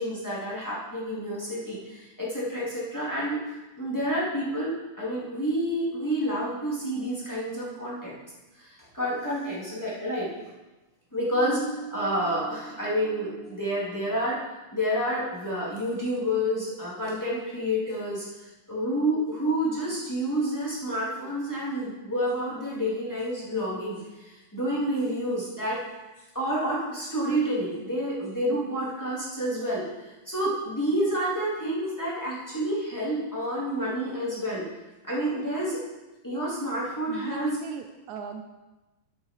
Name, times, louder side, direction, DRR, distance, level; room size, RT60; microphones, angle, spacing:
voice 1, 0.0-3.4 3.8-8.1 8.6-10.4 11.1-14.4 14.7-25.8 26.3-34.7 35.0-35.8 36.2-37.6, equal, 5° left, -7 dB, 3.0 m, -29 dB
voice 2, 37.1-38.4, right 7 dB, 80° right, 6 dB, 2.0 m, -38 dB
13.0 x 7.9 x 4.8 m, 1.1 s
omnidirectional pair, 3.5 m